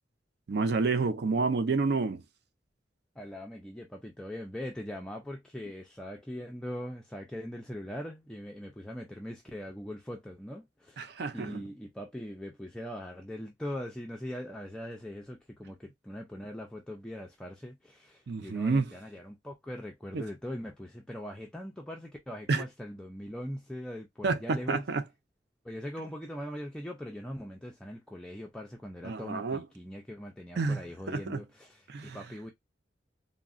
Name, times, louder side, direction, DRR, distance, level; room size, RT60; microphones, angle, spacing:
voice 1, 0.5-2.2 11.0-11.6 18.3-18.9 20.1-20.2 22.5-22.6 24.2-25.0 29.0-29.6 30.6-30.8 31.1-31.4 31.9-32.2, right 4 dB, 60° right, 0.5 m, -29 dB
voice 2, 3.2-24.9 25.6-32.5, equal, 5° left, 0.4 m, -41 dB
3.6 x 2.0 x 2.3 m
head